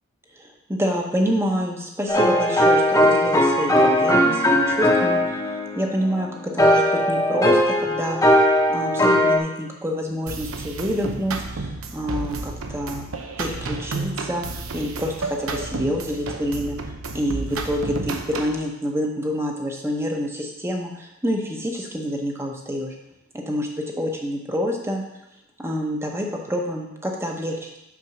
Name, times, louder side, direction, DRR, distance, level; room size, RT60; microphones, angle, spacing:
voice 1, 0.3-5.4 5.8-8.2 8.7-16.8 17.1-22.9 23.3-23.7 24.0-25.0 25.6-27.7, equal, 10° right, 1 dB, 0.8 m, -27 dB
sound 1, 2.1-9.4, equal, 15° left, 0.9 m, -19 dB
sound 2, 10.3-18.6, right 3 dB, 85° right, 0.8 m, -31 dB
6.0 x 5.3 x 6.0 m, 0.88 s
head